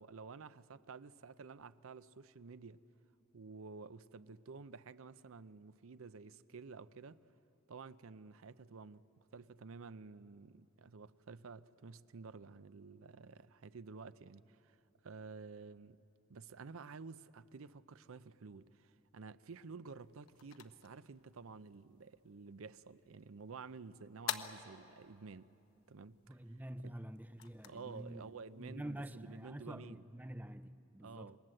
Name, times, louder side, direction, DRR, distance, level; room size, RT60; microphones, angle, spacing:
voice 1, 0.0-2.8 3.3-7.2 7.7-9.1 9.3-14.8 15.0-16.0 16.3-25.5 25.9-26.2 26.5-26.9 27.7-30.1 31.0-31.4, right 4 dB, 70° right, 0.6 m, -51 dB
sound 1, 19.9-29.7, left 8 dB, 70° left, 1.0 m, -50 dB
voice 2, 26.3-31.3, right 1 dB, 10° right, 0.5 m, -47 dB
27.0 x 21.5 x 7.7 m
head